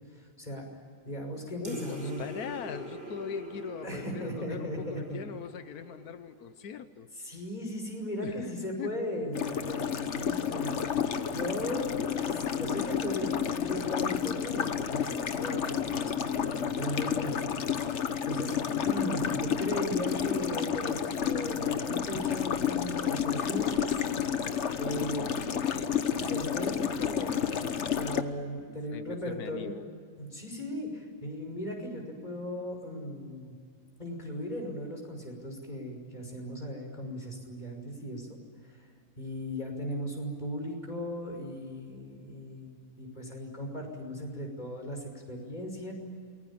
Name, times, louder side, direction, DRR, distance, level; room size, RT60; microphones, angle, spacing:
voice 1, 0.1-0.7 1.0-2.3 3.8-5.2 7.2-11.0 11.3-18.6 18.8-24.1 24.8-25.3 25.9-29.7 30.2-33.6 34.0-38.4 38.6-38.9 39.2-45.9, equal, 30° left, 1 dB, 6.0 m, -37 dB
voice 2, 1.6-7.1 8.2-9.0 24.9-26.0 28.9-29.8, left 7 dB, 90° left, 10 dB, 1.5 m, -41 dB
sound 1, 1.6-6.5, right 2 dB, 40° right, 4.6 m, -44 dB
sound 2, 9.3-28.2, left 8 dB, 55° left, 1.3 m, -30 dB
28.5 x 21.0 x 8.7 m, 2.2 s
omnidirectional pair, 1.5 m